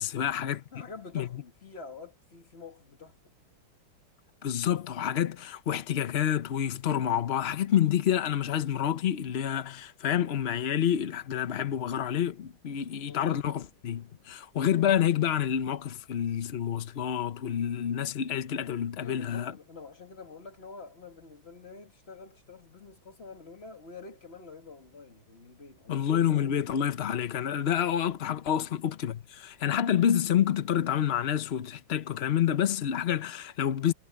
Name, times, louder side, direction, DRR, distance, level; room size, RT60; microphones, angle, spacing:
voice 1, 0.0-0.6 1.1-1.3 4.4-19.5 25.9-33.9, left 9 dB, 85° left, 0.5 m, -28 dB
voice 2, 0.7-3.3 13.1-13.2 19.0-26.1 28.6-28.7, left 4 dB, 30° left, 2.1 m, -47 dB
omnidirectional pair, 2.3 m